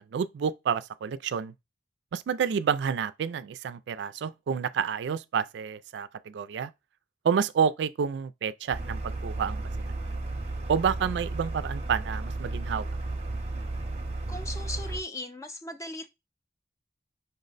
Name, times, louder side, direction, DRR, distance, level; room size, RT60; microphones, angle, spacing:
voice 1, 0.0-1.5 2.1-6.7 7.2-9.9 10.7-12.9, right 7 dB, 75° right, 0.3 m, -29 dB
sound 1, 8.7-15.0, right 2 dB, 35° right, 0.6 m, -33 dB
voice 2, 14.3-16.1, left 1 dB, 15° left, 0.5 m, -38 dB
5.4 x 2.1 x 3.9 m
head